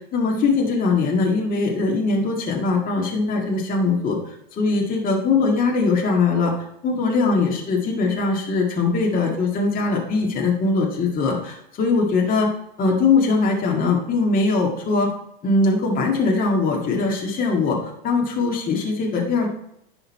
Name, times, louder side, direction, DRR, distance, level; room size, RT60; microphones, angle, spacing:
voice 1, 0.1-4.2 4.6-6.5 6.8-12.5 12.8-15.1 15.4-17.8 18.0-19.5, left 3 dB, 30° left, -1 dB, 1.8 m, -21 dB
11.0 x 3.8 x 4.2 m, 0.77 s
hypercardioid pair, 115°, 30 cm